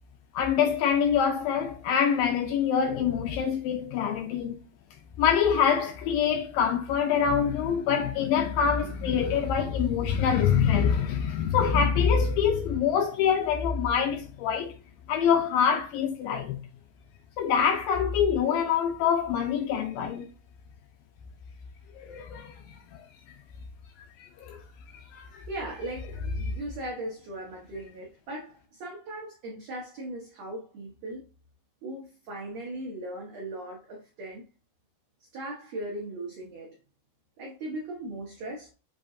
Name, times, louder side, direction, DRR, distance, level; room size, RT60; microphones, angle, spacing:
voice 1, 0.3-4.6 5.2-14.7 15.1-16.6 17.4-20.3 22.0-22.8 24.2-24.6 24.9-25.4, left 7 dB, 80° left, 2.1 m, -25 dB
voice 2, 25.5-31.2 31.8-34.5 35.3-36.7 37.4-38.7, right 1 dB, 80° right, 1.5 m, -38 dB
7.3 x 2.7 x 2.5 m
omnidirectional pair, 4.5 m